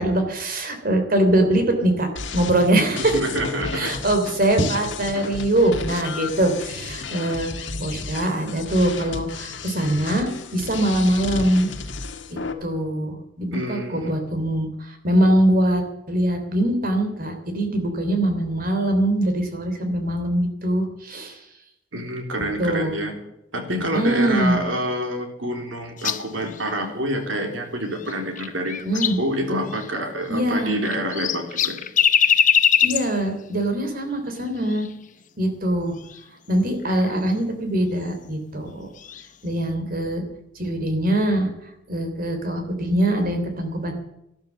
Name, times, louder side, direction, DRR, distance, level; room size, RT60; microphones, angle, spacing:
voice 1, 0.0-3.1 3.7-11.7 12.3-15.8 16.1-21.4 22.6-22.9 23.9-24.6 28.8-29.2 30.3-30.8 32.8-34.9 35.4-36.0 36.5-38.9 39.4-40.2 40.6-41.5 41.9-43.9, right 1 dB, 50° right, 6 dB, 3.3 m, -22 dB
sound 1, 2.2-12.5, left 4 dB, 70° left, 1.8 m, -33 dB
voice 2, 3.0-3.9 13.5-14.1 21.9-23.1 23.5-31.8, equal, 90° right, 4 dB, 3.6 m, -27 dB
sound 2, 26.0-26.6 28.0-29.3 29.7-29.9 30.6-33.2 34.6-34.9 36.0-36.2 36.8-37.2 39.0-39.3, left 8 dB, 45° left, 0.8 m, -22 dB
12.5 x 12.5 x 7.2 m, 0.83 s
head